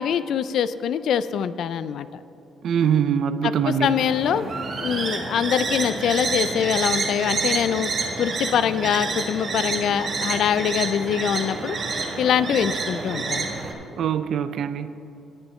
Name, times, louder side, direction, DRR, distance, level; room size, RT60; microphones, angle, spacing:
voice 1, 0.0-2.1 3.4-4.5 4.8-7.9 8.2-11.8 12.2-13.5, left 8 dB, 70° left, 14 dB, 0.3 m, -24 dB
voice 2, 2.6-3.9 14.0-14.9, right 8 dB, 70° right, 12 dB, 0.3 m, -23 dB
sound 1, 3.7-13.7, right 3 dB, 50° right, 1.4 m, -28 dB
18.5 x 6.3 x 3.1 m, 2.9 s
cardioid pair, 90°, 0 cm